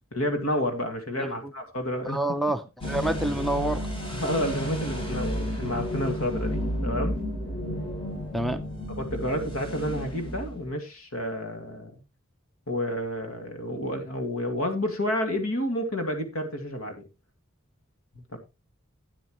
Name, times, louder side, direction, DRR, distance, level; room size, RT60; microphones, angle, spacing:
voice 1, 0.1-2.2 4.1-7.2 8.9-12.0 12.7-17.0 18.1-18.4, left 1 dB, 75° left, 2.2 m, -30 dB
voice 2, 1.2-1.5 2.0-3.9 8.3-8.6, right 1 dB, ahead, 0.6 m, -28 dB
sound 1, 2.8-10.7, equal, 25° left, 3.6 m, -32 dB
12.5 x 9.1 x 3.1 m
head